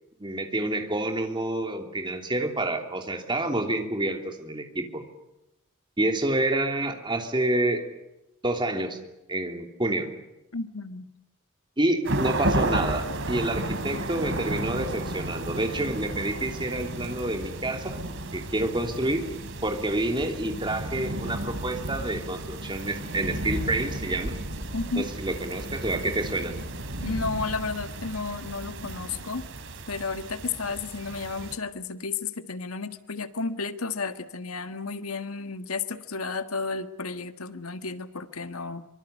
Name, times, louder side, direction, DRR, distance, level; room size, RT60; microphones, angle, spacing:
voice 1, 0.2-5.0 6.0-7.8 8.4-9.0 9.3-10.1 11.8-18.0 18.3-19.3 19.6-24.4 25.0-26.5, right 1 dB, 20° right, 4 dB, 3.1 m, -28 dB
voice 2, 10.5-11.1 24.7-25.1 27.0-29.4 29.9-38.9, left 4 dB, 85° left, 10 dB, 1.6 m, -32 dB
sound 1, 12.0-31.5, right 1 dB, 60° right, 3.2 m, -33 dB
25.0 x 24.5 x 8.3 m, 0.93 s
head